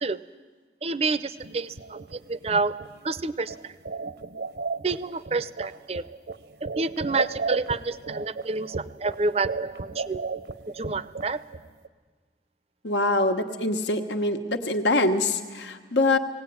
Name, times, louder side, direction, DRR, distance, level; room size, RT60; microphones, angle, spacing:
voice 1, 0.8-2.8 3.0-3.7 4.8-6.1 6.8-10.2 10.7-11.4, right 3 dB, 35° right, 16 dB, 0.6 m, -29 dB
sound 1, 1.4-11.9, right 4 dB, 70° right, 0.8 m, -34 dB
voice 2, 12.8-16.2, left 2 dB, 85° left, 6 dB, 1.4 m, -24 dB
19.5 x 17.0 x 9.5 m, 1.5 s
head